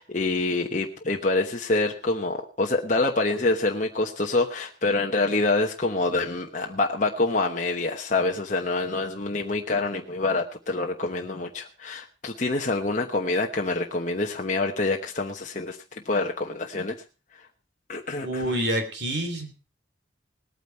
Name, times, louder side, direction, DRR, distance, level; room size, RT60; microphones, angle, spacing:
voice 1, 0.0-17.0 17.9-18.5, left 2 dB, 40° left, 2 dB, 1.1 m, -26 dB
voice 2, 18.2-19.5, right 1 dB, 55° right, 6 dB, 3.0 m, -27 dB
19.0 x 9.2 x 4.5 m, 0.34 s
head